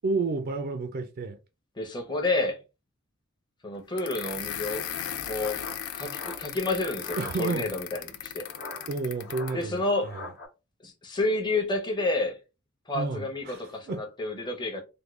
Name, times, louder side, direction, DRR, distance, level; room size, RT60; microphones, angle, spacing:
voice 1, 0.0-1.4 7.2-7.7 8.9-10.2 12.9-14.0, right 3 dB, 45° right, 0.4 m, -31 dB
voice 2, 1.8-2.6 3.6-4.8 5.2-5.6 5.9-8.4 9.5-10.1 10.8-12.4 12.9-14.8, left 2 dB, 20° left, 0.7 m, -29 dB
sound 1, 4.0-9.6, left 10 dB, 75° left, 0.4 m, -37 dB
sound 2, 4.8-7.4 8.4-10.5, left 3 dB, 50° left, 1.0 m, -42 dB
3.5 x 2.2 x 3.1 m
head